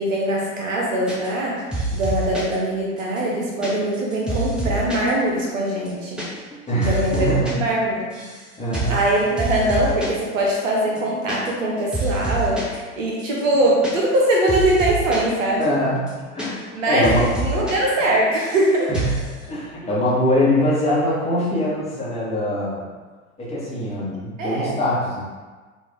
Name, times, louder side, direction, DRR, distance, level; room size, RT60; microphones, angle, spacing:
voice 1, 0.0-6.2 6.8-8.1 8.9-15.7 16.7-17.1 17.4-18.9 24.4-24.8, right 1 dB, 65° right, -3 dB, 1.0 m, -22 dB
sound 1, 1.1-1.5 1.7-2.5 3.0-5.1 5.4-5.5 5.7-6.3 6.5-7.5 7.8-8.4 8.7-9.0 9.4-10.2 10.5-10.6 10.9-11.7 11.9-12.8 13.2-15.3 15.6-15.7 16.0-16.8 17.0-17.7 18.0-18.6 18.9-19.3, right 1 dB, ahead, 0.4 m, -27 dB
voice 2, 6.7-7.6 8.6-9.0 15.6-16.0 16.3-17.2 18.9-19.2 19.5-22.8 23.4-25.2, left 1 dB, 15° left, -8 dB, 1.1 m, -23 dB
3.2 x 2.6 x 3.5 m, 1.3 s
figure-of-eight pair, 80°, 42 cm